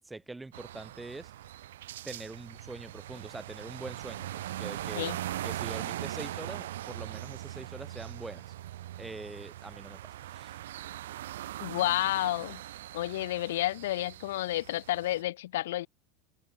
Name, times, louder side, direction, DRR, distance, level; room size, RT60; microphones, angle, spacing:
voice 1, 0.0-1.3 2.0-5.1 5.4-8.5 9.0-10.6, right 2 dB, 10° right, 2.6 m, -44 dB
sound 1, 0.5-15.2, right 13 dB, 90° right, 0.8 m, -41 dB
voice 2, 11.6-12.6 12.9-15.9, left 15 dB, 85° left, 0.8 m, -30 dB
supercardioid pair, 135°, 0 cm